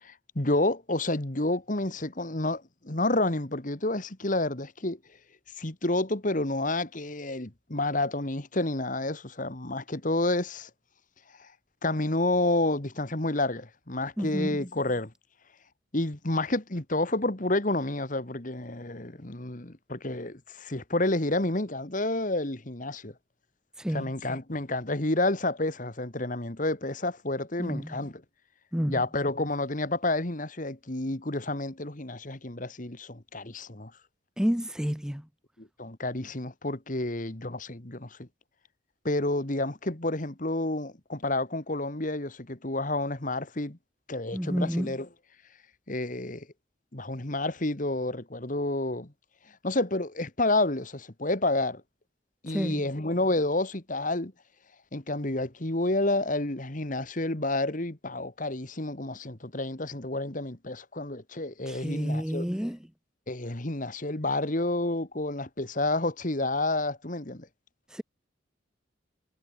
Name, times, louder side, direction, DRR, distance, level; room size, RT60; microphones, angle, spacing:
voice 1, 0.0-5.0 5.6-10.7 11.4-11.5 11.8-15.1 15.9-23.1 23.9-28.2 28.9-33.9 35.6-38.3 39.0-43.8 44.1-45.1 45.9-46.5 46.9-49.1 49.6-51.8 52.4-54.3 54.9-62.5 63.3-67.5, left 2 dB, 40° left, 1.9 m, -29 dB
voice 2, 14.2-14.6 23.8-24.1 27.6-28.0 28.7-29.0 34.4-35.2 44.3-44.9 52.5-52.8 61.7-62.8 67.9-68.0, equal, 5° right, 0.5 m, -30 dB
head